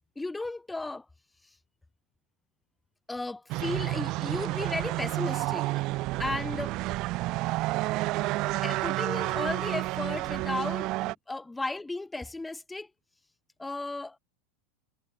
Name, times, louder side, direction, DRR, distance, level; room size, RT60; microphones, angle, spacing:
voice 1, 0.2-1.0 3.1-5.7 6.2-6.8 8.0-12.9 13.6-14.2, left 2 dB, 10° left, 2.7 m, -35 dB
sound 1, 3.5-11.1, right 20 dB, 50° right, 1.3 m, -30 dB
supercardioid pair, 130°, 0 cm